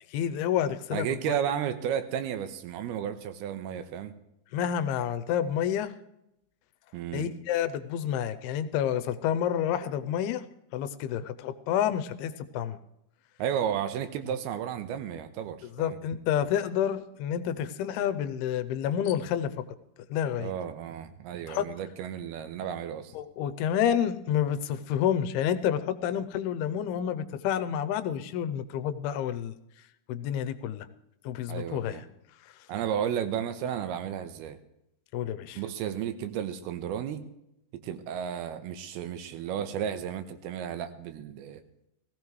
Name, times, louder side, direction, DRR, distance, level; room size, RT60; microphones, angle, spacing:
voice 1, 0.1-1.4 4.5-5.9 7.1-10.4 10.7-12.8 15.8-19.5 20.1-20.5 21.5-21.7 23.2-29.5 30.1-30.9 31.3-32.0 35.1-35.6, left 9 dB, 85° left, 13 dB, 2.6 m, -29 dB
voice 2, 0.9-4.1 6.9-7.3 13.4-16.0 20.4-23.1 31.5-32.1 32.7-34.6 35.6-37.2 37.7-41.6, right 9 dB, 85° right, 10 dB, 2.8 m, -33 dB
17.5 x 16.0 x 3.1 m, 0.83 s
omnidirectional pair, 4.5 m